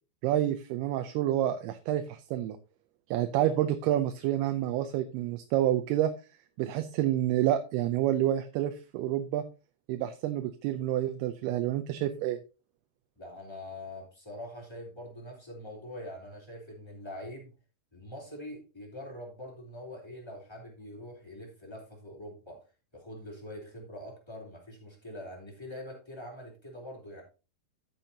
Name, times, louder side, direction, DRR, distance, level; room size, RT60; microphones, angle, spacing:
voice 1, 0.2-2.6 3.1-6.1 6.6-9.4 9.9-12.4, right 12 dB, 80° right, 8 dB, 2.6 m, -28 dB
voice 2, 13.2-17.5 17.9-22.6 22.9-27.2, left 1 dB, 5° left, -2 dB, 2.7 m, -44 dB
13.5 x 6.9 x 2.8 m, 0.32 s
omnidirectional pair, 4.7 m